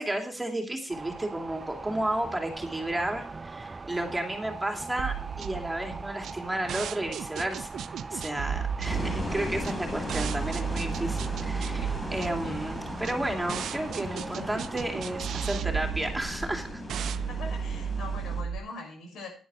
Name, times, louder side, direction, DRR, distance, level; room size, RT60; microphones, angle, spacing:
voice 1, 0.0-7.8 8.1-16.8, right 1 dB, 10° right, 3 dB, 2.6 m, -32 dB
sound 1, 0.9-15.6, right 3 dB, 25° right, 0.6 m, -41 dB
sound 2, 5.0-18.6, right 7 dB, 70° right, 0.7 m, -34 dB
sound 3, 8.8-18.4, left 1 dB, 20° left, 5.5 m, -37 dB
voice 2, 17.3-19.3, left 3 dB, 70° left, 3 dB, 6.3 m, -41 dB
11.0 x 10.5 x 4.7 m, 0.40 s
cardioid pair, 90°, 0 cm